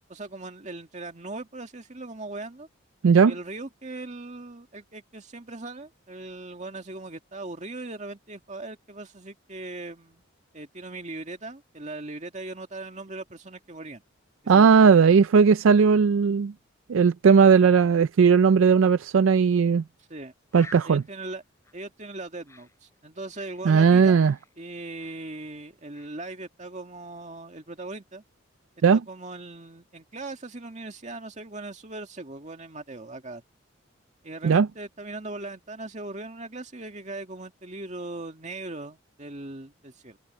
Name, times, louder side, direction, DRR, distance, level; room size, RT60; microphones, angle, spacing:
voice 1, 0.1-2.7 3.3-10.2 10.5-14.0 14.4-15.2 20.1-20.3 20.8-21.4 21.7-24.2 24.6-28.2 28.9-33.4 34.2-40.2, right 2 dB, 35° right, 2.1 m, -39 dB
voice 2, 14.5-16.5 16.9-19.8 20.5-21.0 23.6-24.3 28.8-29.0 34.4-34.7, right 6 dB, 75° right, 0.4 m, -17 dB
Bird, 19.6-19.8 20.1-20.2 20.5-23.7 24.0-25.6 25.9-26.2, left 2 dB, 15° left, 6.8 m, -52 dB
head